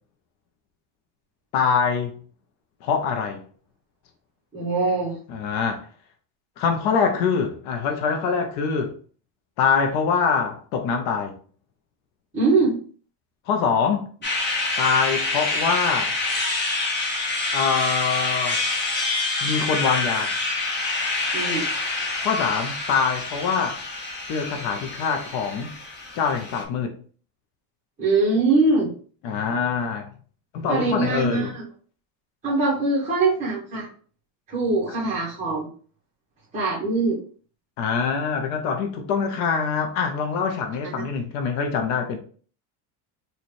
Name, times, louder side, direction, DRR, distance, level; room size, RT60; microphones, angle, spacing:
voice 1, 1.5-2.1 2.8-3.4 5.3-5.9 6.6-8.9 9.6-11.3 13.5-14.1 14.8-16.1 17.5-18.6 19.4-20.4 22.2-23.8 24.3-25.7 26.1-27.0 29.2-30.1 30.5-31.5 37.8-42.2, left 6 dB, 75° left, 0.9 m, -24 dB
voice 2, 4.5-5.2 12.3-12.8 21.3-21.7 28.0-28.9 30.7-31.6 32.4-33.9 34.5-35.7 36.5-37.2, right 3 dB, 15° right, 1.3 m, -22 dB
sound 1, 14.2-26.6, left 3 dB, 25° left, 0.9 m, -27 dB
Wind instrument woodwind instrument, 17.0-25.8, right 2 dB, 40° right, 1.1 m, -45 dB
4.2 x 2.6 x 3.1 m
cardioid pair, 145°, 45 cm